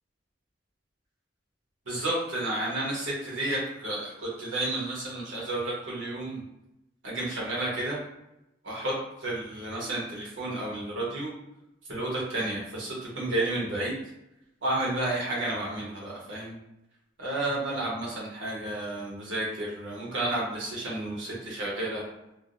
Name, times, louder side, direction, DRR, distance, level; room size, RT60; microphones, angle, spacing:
voice 1, 1.9-6.4 7.0-8.0 8.6-8.9 9.2-11.3 11.9-13.9 14.6-16.6 17.2-22.0, right 1 dB, 80° right, -4 dB, 1.1 m, -31 dB
3.5 x 2.2 x 2.5 m, 0.90 s
head